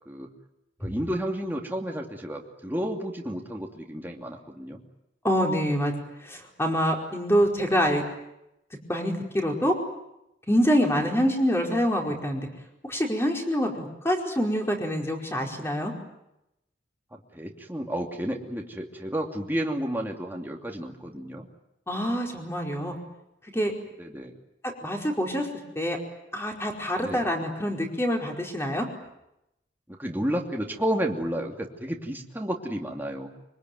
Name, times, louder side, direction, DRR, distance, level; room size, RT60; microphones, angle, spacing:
voice 1, 0.8-4.8 10.9-11.1 17.1-21.5 24.0-24.3 27.0-27.2 29.9-33.3, equal, 10° right, 0 dB, 2.7 m, -31 dB
voice 2, 5.2-5.9 6.2-8.0 8.9-9.7 10.5-12.5 12.8-15.9 21.9-22.9 23.5-23.7 24.6-25.5 25.7-26.0 26.3-28.9, equal, 15° left, 1 dB, 4.8 m, -26 dB
25.0 x 24.5 x 9.4 m, 0.86 s
head